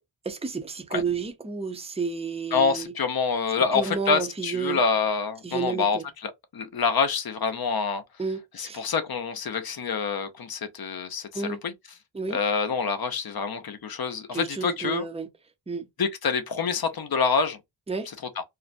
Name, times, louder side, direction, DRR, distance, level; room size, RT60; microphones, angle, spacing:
voice 1, 0.2-2.9 3.7-4.8 5.4-6.0 8.2-8.8 11.3-11.6 12.1-12.4 14.3-15.3 15.7-15.9 17.9-18.1, right 5 dB, 15° right, 0.5 m, -31 dB
voice 2, 2.5-8.0 8.6-11.7 12.3-15.1 16.0-17.6, left 5 dB, 50° left, 0.6 m, -26 dB
2.5 x 2.1 x 2.4 m
wide cardioid pair, 90°, 47 cm